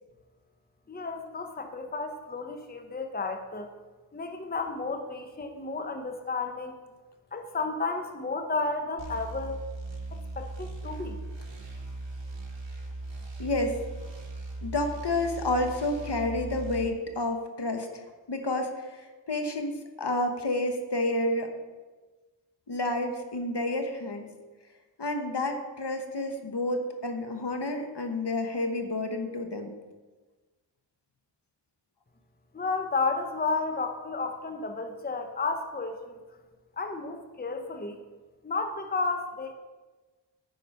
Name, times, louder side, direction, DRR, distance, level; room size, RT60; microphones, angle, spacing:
voice 1, 0.9-3.7 4.1-6.7 7.3-9.6 10.1-11.2 32.5-36.2 36.8-38.0 38.4-39.5, left 3 dB, 20° left, 5 dB, 0.7 m, -32 dB
sound 1, 9.0-16.9, right 2 dB, 75° right, 1.3 m, -39 dB
voice 2, 13.4-13.8 14.6-21.5 22.7-24.2 25.0-29.7, left 2 dB, 60° left, 5 dB, 1.1 m, -30 dB
9.6 x 4.9 x 5.5 m, 1.3 s
wide cardioid pair, 50°, 46 cm